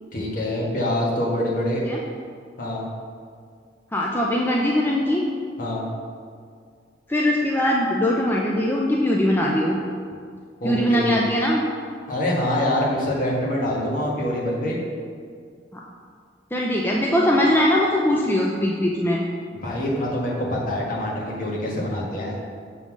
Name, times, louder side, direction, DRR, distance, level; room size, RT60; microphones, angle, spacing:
voice 1, 0.1-1.8 2.6-2.9 5.6-5.8 10.6-11.2 12.1-14.8 19.6-22.3, left 1 dB, 50° left, -4 dB, 1.5 m, -25 dB
voice 2, 3.9-5.3 7.1-9.8 10.6-11.6 15.7-15.8 16.5-19.2, left 1 dB, 10° left, -2 dB, 0.5 m, -21 dB
6.7 x 3.7 x 6.2 m, 2.1 s
head